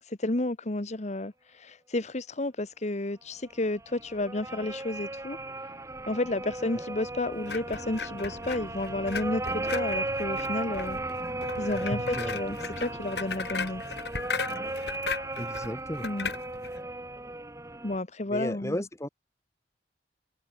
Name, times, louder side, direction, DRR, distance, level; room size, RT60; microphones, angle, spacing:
voice 1, 0.0-5.4 6.1-11.0 11.6-13.8 16.0-16.3 17.8-18.8, left 2 dB, 40° left, 1.3 m, -31 dB
sound 1, 3.6-18.0, right 2 dB, 15° right, 2.0 m, -36 dB
sound 2, 7.4-16.8, left 4 dB, 70° left, 4.0 m, -37 dB
voice 2, 15.4-16.1 18.3-19.1, left 1 dB, 15° left, 2.6 m, -34 dB
head